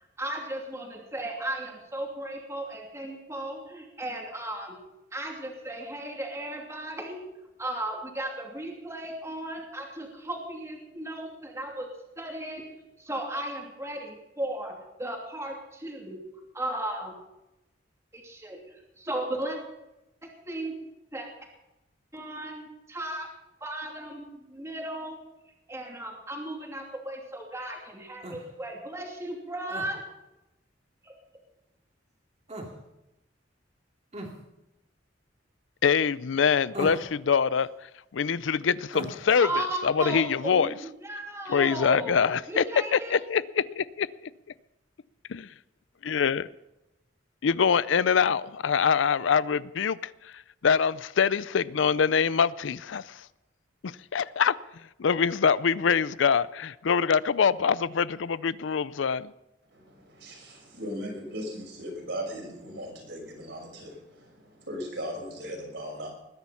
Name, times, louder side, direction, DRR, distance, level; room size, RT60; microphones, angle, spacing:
voice 1, 0.2-4.8 5.1-7.2 7.6-11.9 12.2-12.6 13.0-16.2 16.5-17.1 18.1-18.6 19.0-19.6 20.2-20.7 21.1-21.3 22.1-23.3 23.6-25.2 25.7-30.0 31.0-31.1 39.4-42.2 42.5-43.2, right 1 dB, 15° right, 0 dB, 2.7 m, -35 dB
sound 1, 28.2-28.4 29.7-29.9 32.5-32.7 34.1-34.3 36.7-37.1 38.9-39.2, right 1 dB, 35° right, 2.7 m, -36 dB
voice 2, 35.8-37.7 38.1-40.7 41.5-42.7 42.9-44.3 45.3-45.5 46.0-46.5 47.4-53.3 53.8-54.5 55.0-59.3, left 6 dB, 75° left, 19 dB, 0.5 m, -24 dB
voice 3, 59.7-66.1, equal, 65° right, 1 dB, 5.8 m, -38 dB
20.0 x 10.5 x 5.7 m, 0.94 s
head